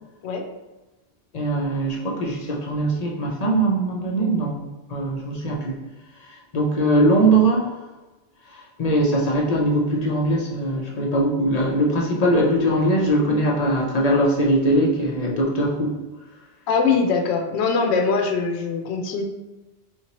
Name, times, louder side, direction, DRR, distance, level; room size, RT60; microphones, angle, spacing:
voice 1, 1.3-4.6 4.9-5.8 6.5-7.7 8.5-16.0, right 1 dB, 45° left, -2 dB, 0.6 m, -21 dB
voice 2, 16.7-19.2, left 5 dB, 80° left, 3 dB, 0.9 m, -22 dB
4.3 x 2.9 x 2.9 m, 1.1 s
omnidirectional pair, 1.1 m